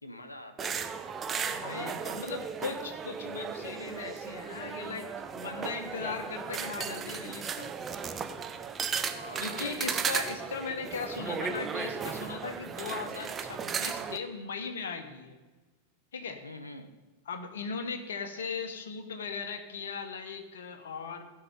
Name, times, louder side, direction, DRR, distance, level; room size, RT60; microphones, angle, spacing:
voice 1, 0.0-1.3 1.7-2.3 9.1-9.7 16.4-16.9, left 1 dB, 85° left, 7 dB, 0.9 m, -47 dB
sound 1, 0.6-14.2, right 6 dB, 20° right, 0.7 m, -36 dB
voice 2, 1.5-7.7 9.4-15.4 16.1-16.4 17.3-21.2, left 5 dB, 65° left, 7 dB, 1.2 m, -38 dB
15.5 x 5.6 x 5.4 m, 1.3 s
figure-of-eight pair, 90°, 0 cm